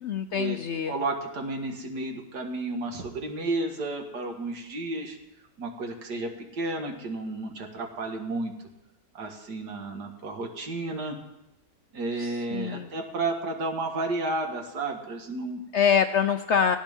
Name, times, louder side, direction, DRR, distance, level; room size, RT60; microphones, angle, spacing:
voice 1, 0.0-0.9 12.2-12.9 15.7-16.8, left 7 dB, 65° left, 9 dB, 0.7 m, -25 dB
voice 2, 0.9-5.2 5.6-8.5 9.1-11.2 11.9-15.6, right 2 dB, 85° right, 3 dB, 2.3 m, -32 dB
17.5 x 15.0 x 3.6 m, 0.92 s
omnidirectional pair, 1.7 m